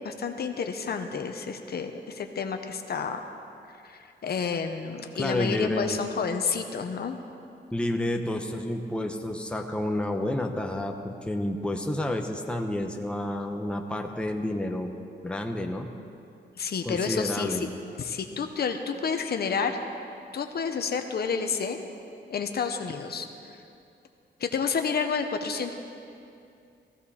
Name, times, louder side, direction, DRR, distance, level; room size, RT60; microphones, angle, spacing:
voice 1, 0.0-3.3 3.7-7.2 16.6-17.7 18.0-19.8 20.3-21.8 22.3-23.6 24.4-25.7, left 6 dB, 55° left, 6 dB, 0.9 m, -30 dB
voice 2, 5.1-6.0 7.7-14.9 15.2-15.9 16.9-17.6, left 1 dB, 5° left, 3 dB, 0.9 m, -30 dB
15.5 x 15.5 x 4.3 m, 2.6 s
cardioid pair, 110°, 19 cm